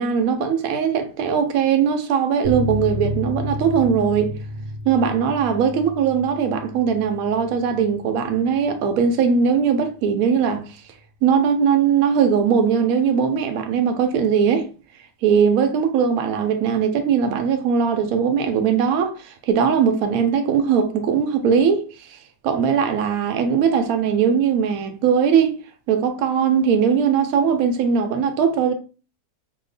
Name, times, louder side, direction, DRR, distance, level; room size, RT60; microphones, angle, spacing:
voice 1, 0.0-4.3 4.8-10.6 11.2-14.7 15.2-22.2 22.4-25.6 25.9-28.7, right 7 dB, 70° right, 0.9 m, -20 dB
sound 1, 2.4-9.6 9.8-9.9 10.2-10.3, equal, 85° right, 1.3 m, -32 dB
2.9 x 2.2 x 3.9 m
omnidirectional pair, 1.8 m